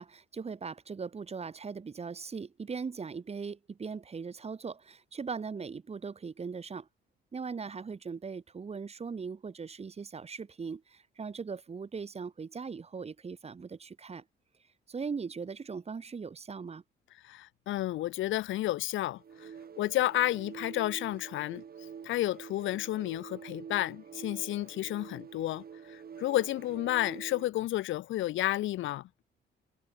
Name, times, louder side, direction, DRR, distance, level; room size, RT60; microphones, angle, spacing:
voice 1, 0.0-6.9 7.3-14.2 14.9-16.8, right 5 dB, 30° right, 1.4 m, -39 dB
voice 2, 17.2-19.5 19.8-21.6 22.0-25.6 25.9-29.1, left 15 dB, 75° left, 0.7 m, -31 dB
sound 1, 19.2-27.6, right 7 dB, 50° right, 7.3 m, -47 dB
cardioid pair, 90°, 20 cm